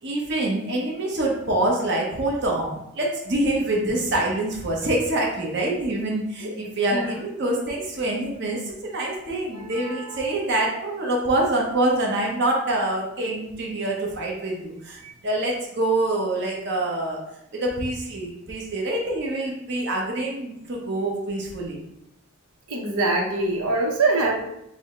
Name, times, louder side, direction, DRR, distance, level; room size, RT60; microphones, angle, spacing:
voice 1, 0.0-17.2 17.5-21.8, right 1 dB, 50° right, -2 dB, 0.9 m, -25 dB
voice 2, 9.5-10.3 15.0-15.2 22.7-24.4, right 2 dB, 85° right, 1 dB, 0.8 m, -24 dB
4.9 x 2.1 x 3.7 m, 0.79 s
head